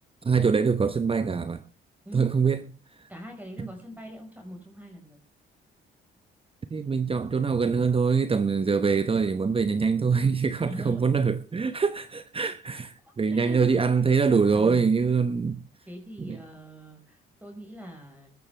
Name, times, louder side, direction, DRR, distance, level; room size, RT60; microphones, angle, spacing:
voice 1, 0.2-1.6 2.1-2.6 3.6-3.7 6.7-15.6 16.2-16.4, right 5 dB, 30° right, 0.9 m, -24 dB
voice 2, 3.1-5.2 10.6-11.2 13.0-13.8 15.9-18.3, equal, 10° right, 4.7 m, -42 dB
21.0 x 13.5 x 3.3 m
cardioid pair, 90°, 20 cm